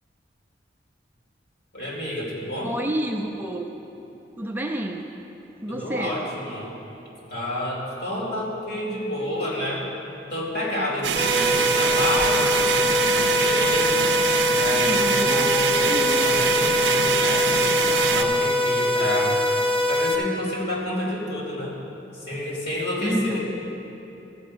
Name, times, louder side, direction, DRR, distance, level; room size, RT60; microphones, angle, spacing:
voice 1, 1.7-2.7 5.7-6.7 7.3-9.9 10.3-13.9 14.4-19.4 19.9-21.8 22.1-23.4, left 1 dB, 60° left, -5 dB, 3.0 m, -29 dB
voice 2, 2.6-3.7 4.4-5.1 5.6-6.3 14.8-15.5 15.8-16.3 23.0-23.5, right 1 dB, 10° right, 1 dB, 0.5 m, -29 dB
sound 1, 11.0-18.2, right 8 dB, 65° right, 0.5 m, -24 dB
sound 2, 11.2-20.2, left 1 dB, 30° left, 1.0 m, -23 dB
13.0 x 5.4 x 8.5 m, 3.0 s
head